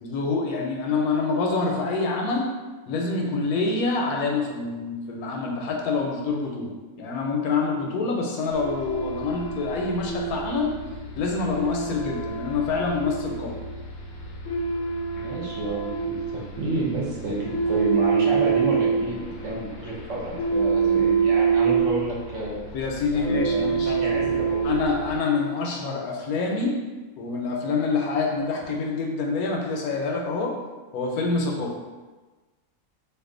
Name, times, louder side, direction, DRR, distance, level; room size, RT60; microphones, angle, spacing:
voice 1, 0.0-2.5 2.9-10.8 11.2-13.5 22.7-23.9 24.6-26.8 27.2-30.6 30.9-31.7, left 4 dB, 85° left, 0 dB, 1.1 m, -26 dB
sound 1, 8.5-25.2, right 5 dB, 65° left, 0.7 m, -26 dB
voice 2, 15.2-22.6 23.1-24.7, right 2 dB, 60° right, -5 dB, 1.0 m, -30 dB
2.6 x 2.4 x 3.7 m, 1.3 s
omnidirectional pair, 1.5 m